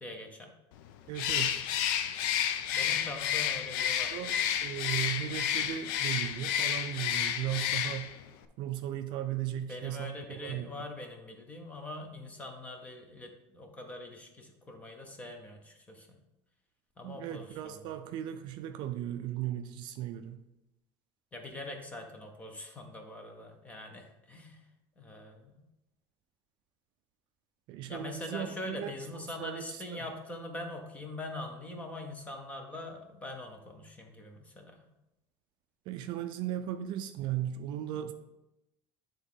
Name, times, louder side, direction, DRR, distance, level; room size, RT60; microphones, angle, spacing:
voice 1, 0.0-0.5 2.7-4.2 4.9-5.1 9.7-16.2 17.0-17.8 21.3-24.6 25.0-25.6 27.9-34.9, left 2 dB, 15° left, 4 dB, 0.7 m, -43 dB
Bird, 1.1-8.2, left 10 dB, 90° left, 0.5 m, -31 dB
voice 2, 1.1-1.6 4.1-8.2 8.6-10.7 17.0-20.4 27.7-30.1 35.9-38.1, right 11 dB, 50° right, 8 dB, 0.4 m, -37 dB
9.6 x 3.6 x 3.6 m, 0.92 s
cardioid pair, 175°, 10 cm